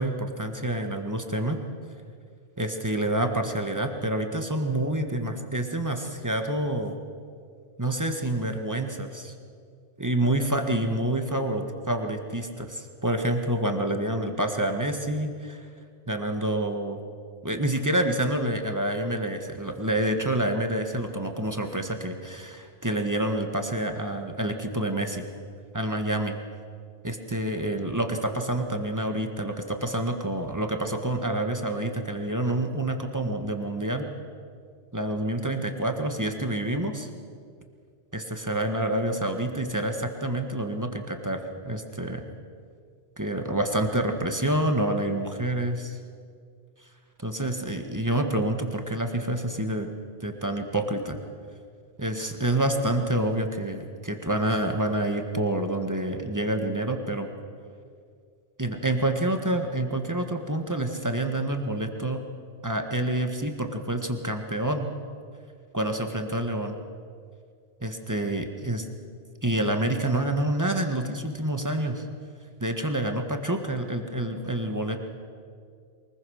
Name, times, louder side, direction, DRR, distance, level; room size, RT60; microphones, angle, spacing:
voice 1, 0.0-1.6 2.6-7.0 7.8-9.3 10.0-15.6 16.1-17.0 17.4-25.2 25.7-26.4 27.0-34.0 34.9-37.1 38.1-41.4 41.6-42.2 43.2-46.0 47.2-49.9 50.2-51.2 52.0-57.3 58.6-62.2 62.6-64.9 65.7-66.8 67.8-68.9 69.4-72.0 72.6-75.0, right 1 dB, 15° right, 5 dB, 1.6 m, -28 dB
23.5 x 21.0 x 6.5 m, 2.2 s
omnidirectional pair, 1.1 m